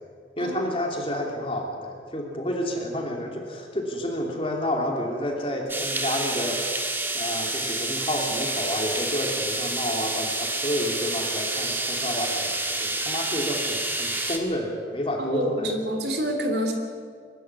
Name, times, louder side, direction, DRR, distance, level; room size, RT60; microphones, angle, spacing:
voice 1, 0.4-6.6 7.1-15.8, left 1 dB, 30° left, 1 dB, 2.9 m, -30 dB
sound 1, 5.7-14.4, right 2 dB, 10° right, 1.5 m, -28 dB
voice 2, 15.2-16.7, equal, 65° right, 4 dB, 3.2 m, -27 dB
22.5 x 12.5 x 9.6 m, 2.1 s
head